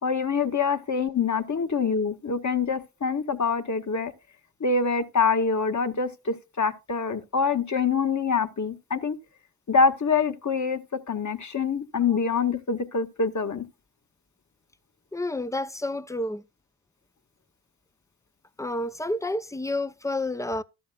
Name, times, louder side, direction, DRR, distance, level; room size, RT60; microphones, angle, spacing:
voice 1, 0.0-4.1 4.6-9.2 9.7-13.7, left 5 dB, 35° left, 1.6 m, -25 dB
voice 2, 15.1-16.4 18.6-20.6, left 1 dB, 5° left, 0.7 m, -29 dB
13.0 x 11.5 x 2.4 m
hypercardioid pair, 45°, 50 cm